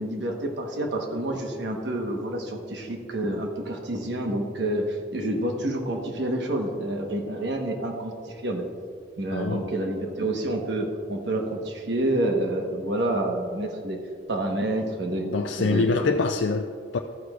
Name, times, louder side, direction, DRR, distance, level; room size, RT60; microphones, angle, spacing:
voice 1, 0.0-8.6 9.2-14.0 14.3-15.3 15.6-16.1, right 1 dB, 70° right, 3 dB, 1.2 m, -28 dB
voice 2, 9.3-9.7 15.2-17.0, left 4 dB, 70° left, 5 dB, 0.4 m, -25 dB
14.0 x 9.4 x 2.4 m, 2.2 s
head